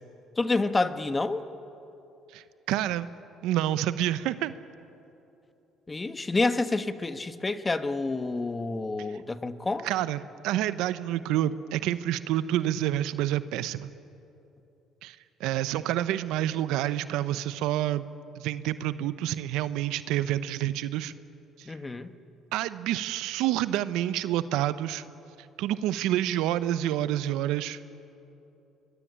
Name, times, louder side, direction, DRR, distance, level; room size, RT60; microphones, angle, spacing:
voice 1, 0.4-1.4 5.9-9.9 21.6-22.1, left 3 dB, 20° left, 10 dB, 1.4 m, -28 dB
voice 2, 2.3-3.1 3.4-4.5 9.8-13.9 15.0-18.1 18.4-21.1 21.6-21.7 22.5-25.0 25.6-27.8, right 13 dB, 80° right, 14 dB, 0.9 m, -28 dB
24.0 x 22.0 x 10.0 m, 2.8 s
supercardioid pair, 80°, 0 cm